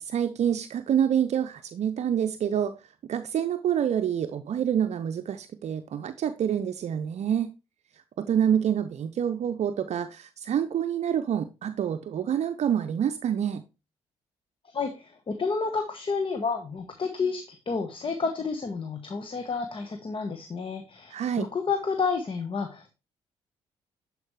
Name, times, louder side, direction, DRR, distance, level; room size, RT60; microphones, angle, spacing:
voice 1, 0.0-2.7 3.1-7.5 8.2-13.6 21.1-21.5, right 9 dB, 55° right, 9 dB, 0.6 m, -27 dB
voice 2, 14.6-22.9, left 4 dB, 40° left, 6 dB, 1.2 m, -30 dB
10.5 x 4.9 x 3.2 m, 0.29 s
hypercardioid pair, 50°, 14 cm